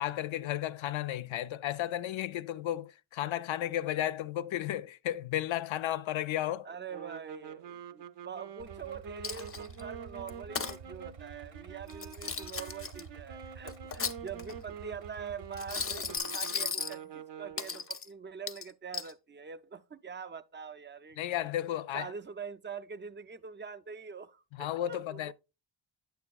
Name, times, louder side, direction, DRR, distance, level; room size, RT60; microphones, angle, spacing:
voice 1, 0.0-6.7 21.2-22.1 24.6-25.3, left 12 dB, 85° left, 0.5 m, -33 dB
voice 2, 6.6-21.2 21.9-25.3, right 6 dB, 25° right, 0.3 m, -44 dB
sound 1, 6.9-17.9, right 8 dB, 65° right, 0.6 m, -47 dB
Idling, 8.6-16.2, right 5 dB, 90° right, 1.0 m, -50 dB
Coin (dropping), 9.2-9.8 10.3-10.8 11.9-13.0 13.7-14.6 15.5-17.0 17.6-18.1 18.5-19.1, left 5 dB, 30° left, 0.5 m, -36 dB
9.3 x 7.0 x 2.3 m
wide cardioid pair, 170°, 45 cm